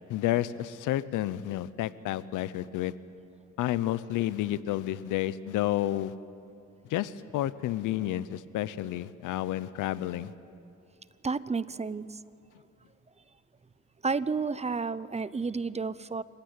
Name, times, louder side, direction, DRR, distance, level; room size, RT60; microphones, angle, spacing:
voice 1, 0.1-2.9 3.6-6.1 6.9-10.3, left 13 dB, 85° left, 16 dB, 0.8 m, -30 dB
voice 2, 11.2-12.2 14.0-16.2, right 4 dB, 20° right, 17 dB, 0.7 m, -31 dB
29.0 x 16.0 x 9.7 m, 2.6 s
cardioid pair, 90°, 30 cm